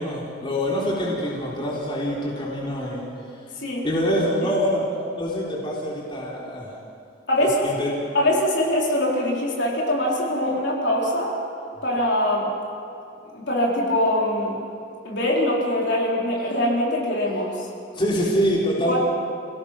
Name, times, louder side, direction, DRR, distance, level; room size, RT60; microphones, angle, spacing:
voice 1, 0.0-3.0 3.8-4.8 5.2-6.7 7.4-7.9 17.9-19.0, equal, 25° left, -5 dB, 3.9 m, -25 dB
voice 2, 7.3-7.7 8.1-11.3 11.8-12.5 13.3-14.6 15.0-17.7 18.9-19.0, left 1 dB, 60° left, -3 dB, 4.2 m, -23 dB
29.5 x 18.0 x 6.0 m, 2.6 s
head